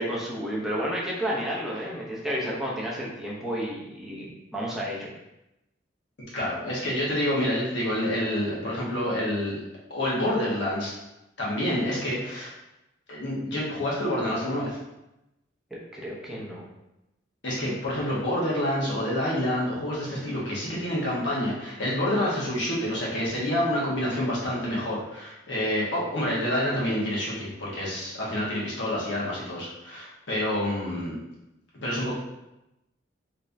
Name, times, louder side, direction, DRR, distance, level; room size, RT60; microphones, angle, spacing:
voice 1, 0.0-5.1 15.9-16.6, equal, ahead, -5 dB, 0.7 m, -31 dB
voice 2, 6.3-9.6 9.9-10.9 11.4-12.5 13.1-14.8 17.4-31.1 31.8-32.1, left 1 dB, 70° left, -6 dB, 1.2 m, -28 dB
3.6 x 3.2 x 2.6 m, 0.93 s
head